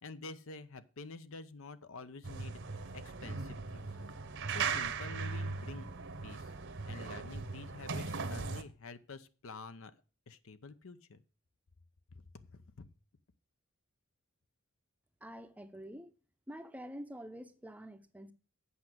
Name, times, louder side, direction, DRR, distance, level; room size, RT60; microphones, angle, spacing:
voice 1, 0.0-3.9 4.5-5.9 6.2-6.5 6.9-9.9 10.3-11.2 12.1-12.9, left 3 dB, 65° left, 0.7 m, -49 dB
sound 1, 2.2-8.6, right 4 dB, 60° right, 1.0 m, -39 dB
voice 2, 15.2-16.1 16.5-18.3, equal, 5° right, 0.6 m, -47 dB
8.4 x 5.8 x 7.7 m
head